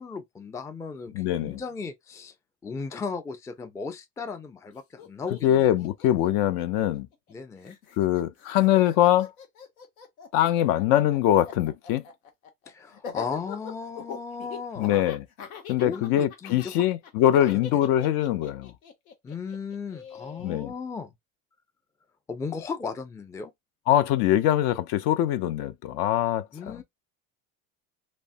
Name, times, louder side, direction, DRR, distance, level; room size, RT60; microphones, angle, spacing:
voice 1, 0.0-2.3 2.6-5.7 7.3-7.8 12.7-15.0 15.8-16.7 17.4-17.8 19.2-21.1 22.3-23.5 26.5-26.8, left 5 dB, 10° left, 0.3 m, -36 dB
voice 2, 1.1-1.6 5.4-7.1 8.0-9.3 10.3-12.0 14.8-15.2 15.7-18.7 20.4-20.7 23.9-26.8, left 12 dB, 60° left, 0.5 m, -23 dB
Laughter, 4.7-4.8 5.0-7.3 7.6-20.6, left 6 dB, 90° left, 0.9 m, -42 dB
3.0 x 2.1 x 2.7 m
hypercardioid pair, 85°, 41 cm